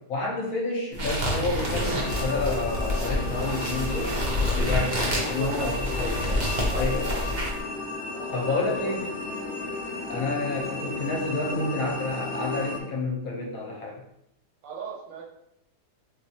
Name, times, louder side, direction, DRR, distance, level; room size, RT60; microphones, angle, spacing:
voice 1, 0.0-4.2 4.5-6.5 6.7-7.2 8.3-9.0 10.1-14.0, left 3 dB, 60° left, -1 dB, 1.1 m, -30 dB
sound 1, 0.9-7.6, left 1 dB, 50° right, 0.5 m, -28 dB
sound 2, 1.6-12.8, left 3 dB, 85° left, 0.6 m, -34 dB
voice 2, 4.8-5.9 6.5-7.1 8.1-8.9 10.7-11.1 14.6-15.2, right 5 dB, 90° right, -1 dB, 1.6 m, -39 dB
4.6 x 2.3 x 2.8 m, 0.79 s
omnidirectional pair, 1.9 m